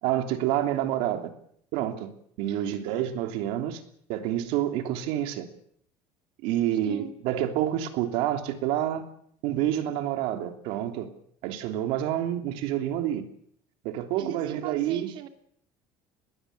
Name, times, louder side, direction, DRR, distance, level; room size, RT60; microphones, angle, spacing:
voice 1, 0.0-1.3 1.7-2.1 2.4-3.8 4.1-5.5 6.4-9.0 9.4-11.1 11.4-13.2 13.8-15.1, right 12 dB, 80° right, 7 dB, 3.2 m, -28 dB
voice 2, 2.5-2.8 6.8-7.1 14.2-15.3, right 11 dB, 60° right, 7 dB, 2.7 m, -39 dB
21.0 x 16.5 x 9.6 m, 0.67 s
cardioid pair, 140°, 10 cm